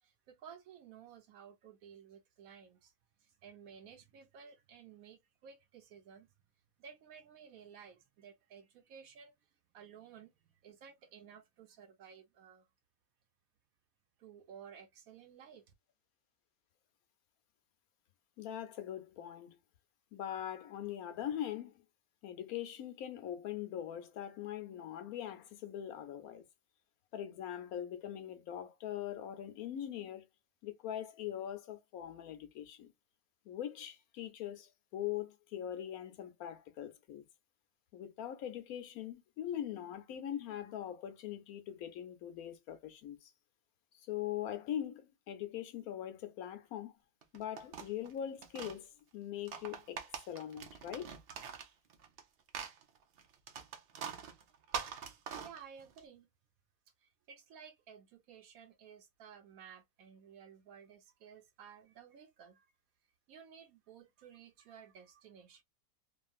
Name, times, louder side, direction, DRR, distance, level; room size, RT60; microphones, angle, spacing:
voice 1, 0.0-2.9 3.2-6.3 6.8-9.3 9.7-12.7 14.2-15.7 54.7-54.9 55.4-56.3 57.0-62.7 63.3-65.6, right 7 dB, 75° right, 1.0 m, -55 dB
voice 2, 18.4-19.6 20.1-21.7 22.2-26.4 27.1-30.3 30.6-32.9 33.4-37.2 37.9-43.3 44.0-46.9 47.3-51.1, left 11 dB, 75° left, 1.1 m, -42 dB
sound 1, 47.2-48.8 49.3-52.2 52.5-56.0, right 7 dB, 60° right, 0.6 m, -44 dB
2.9 x 2.5 x 2.4 m
omnidirectional pair, 1.6 m